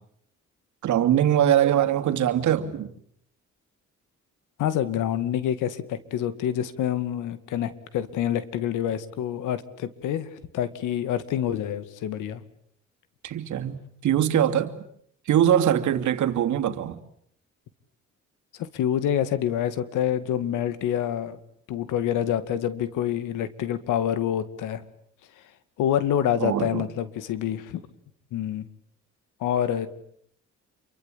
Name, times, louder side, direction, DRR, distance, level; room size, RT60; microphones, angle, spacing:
voice 1, 0.8-2.9 13.2-14.7 15.3-17.0 26.4-26.9, right 10 dB, 75° right, 2.7 m, -22 dB
voice 2, 4.6-12.4 18.6-21.4 21.7-24.8 25.8-27.8 28.3-28.7 29.4-29.9, left 10 dB, 90° left, 2.2 m, -27 dB
28.5 x 24.0 x 8.7 m
cardioid pair, 90°, 30 cm